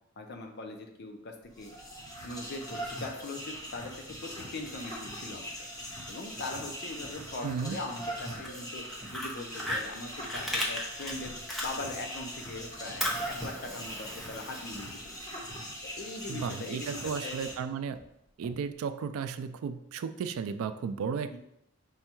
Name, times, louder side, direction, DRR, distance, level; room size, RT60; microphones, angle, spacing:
voice 1, 0.2-1.7 2.2-3.9 4.2-5.5 6.1-8.8 9.1-11.3 11.6-15.4 15.9-17.4 21.3-21.4, left 2 dB, 50° left, 3 dB, 0.6 m, -41 dB
sound 1, 1.4-17.5, equal, 20° left, 1.0 m, -41 dB
sound 2, 1.9-2.1 2.4-3.1 3.5-4.4 4.6-5.0 5.3-8.1 8.3-9.3 9.7-10.1 10.4-10.6 11.0-11.6 11.9-13.3 13.8-14.2 14.7-15.2 15.5-18.7, right 1 dB, 40° right, 0.7 m, -54 dB
voice 2, 7.4-7.8 16.3-18.0 18.4-21.4, right 6 dB, 80° right, 11 dB, 0.3 m, -34 dB
Fire, 8.4-12.2 12.5-15.3, left 1 dB, ahead, 0.7 m, -36 dB
5.4 x 2.3 x 4.4 m, 0.79 s
head